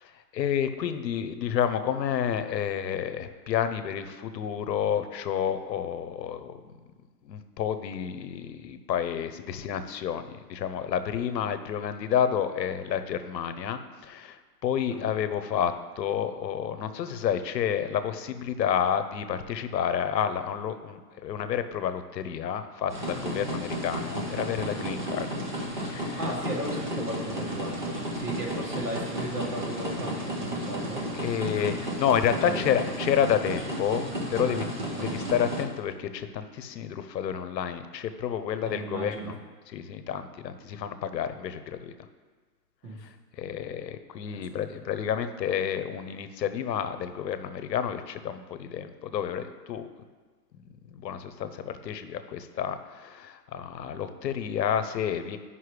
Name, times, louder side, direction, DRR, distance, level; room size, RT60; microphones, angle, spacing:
voice 1, 0.0-6.5 7.2-25.3 25.8-26.2 31.1-34.7 34.9-39.4 39.7-41.9 43.0-43.1 43.4-49.9 50.9-55.4, left 8 dB, 80° left, 10 dB, 0.8 m, -30 dB
sound 1, 22.9-35.6, equal, 30° right, 0.6 m, -33 dB
voice 2, 26.2-31.0 32.4-32.8 34.4-35.1 38.7-39.3 42.8-43.0 44.3-44.4, right 1 dB, 65° right, -2 dB, 2.0 m, -36 dB
9.4 x 5.6 x 3.3 m, 1.4 s
hypercardioid pair, 180°, 49 cm